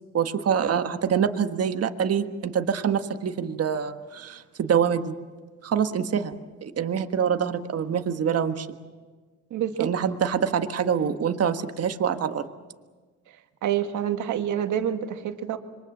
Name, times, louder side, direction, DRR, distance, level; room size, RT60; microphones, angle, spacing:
voice 1, 0.1-5.1 5.6-6.3 6.6-8.7 9.8-12.5, right 7 dB, 55° right, 8 dB, 1.5 m, -25 dB
voice 2, 9.5-9.9 13.6-15.6, right 10 dB, 80° right, 7 dB, 1.8 m, -27 dB
26.5 x 23.5 x 7.2 m, 1.4 s
cardioid pair, 90°, 30 cm